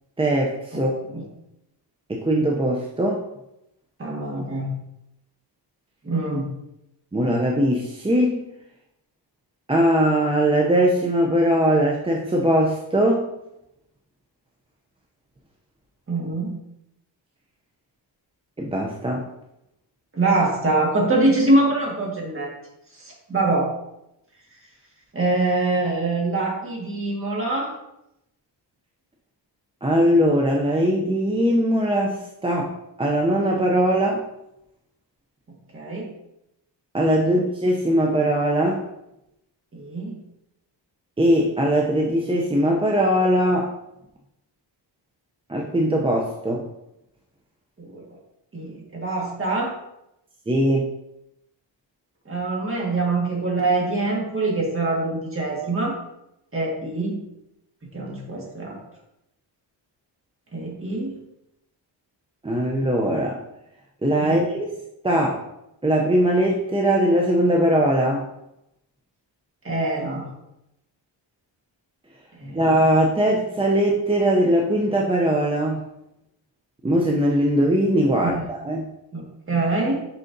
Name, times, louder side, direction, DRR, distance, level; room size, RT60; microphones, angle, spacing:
voice 1, 0.2-0.9 2.1-3.2 7.1-8.4 9.7-13.3 18.6-19.2 29.8-32.7 33.0-34.2 36.9-38.8 41.2-43.7 45.5-46.6 50.5-50.9 62.4-63.4 64.0-64.7 65.0-65.4 65.8-68.3 72.5-75.8 76.8-78.9, right 1 dB, 15° right, -1 dB, 0.5 m, -20 dB
voice 2, 0.7-1.3 4.0-4.7 6.0-6.5 16.1-16.5 20.1-22.5 23.0-23.7 25.1-27.7 35.7-36.1 37.2-37.4 39.7-40.2 47.8-48.0 48.5-49.7 52.2-56.0 56.5-57.2 57.9-58.8 60.5-61.1 64.2-64.5 69.6-70.3 72.4-72.6 78.2-78.5 79.1-79.2 79.5-80.0, right 2 dB, 30° right, -3 dB, 1.7 m, -24 dB
6.4 x 5.5 x 2.7 m, 0.86 s
wide cardioid pair, 130°, 45 cm